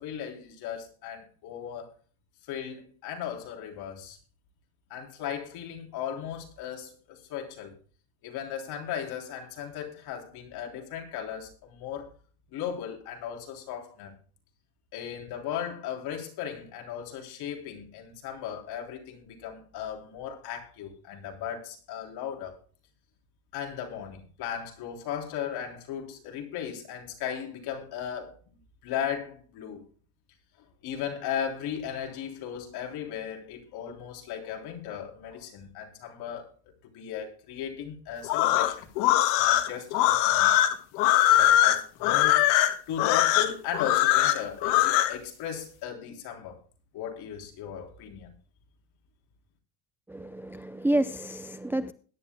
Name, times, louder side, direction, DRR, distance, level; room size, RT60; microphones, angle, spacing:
voice 1, 0.0-1.9 2.5-4.2 4.9-7.7 8.2-12.1 12.5-14.1 14.9-22.6 23.5-29.8 30.8-36.5 36.9-40.5 41.4-42.4 42.9-46.6 46.9-48.3, left 8 dB, 60° left, 3.6 m, -36 dB
sound 1, 38.2-45.2, left 13 dB, 85° left, 1.5 m, -22 dB
voice 2, 50.1-51.9, right 1 dB, 5° right, 0.5 m, -29 dB
21.0 x 10.5 x 2.2 m
cardioid pair, 135°, 42 cm